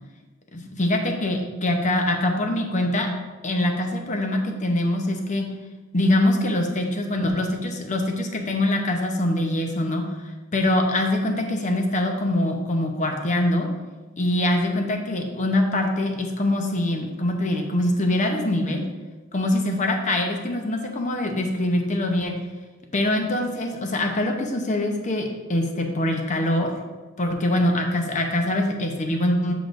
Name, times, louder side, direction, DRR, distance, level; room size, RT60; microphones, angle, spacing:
voice 1, 0.5-3.1 3.4-5.5 5.9-10.0 10.5-13.7 14.2-18.8 19.3-22.4 22.9-25.2 25.5-26.7 27.2-29.5, left 1 dB, 35° left, 3 dB, 0.8 m, -23 dB
8.3 x 4.9 x 2.6 m, 1.2 s
head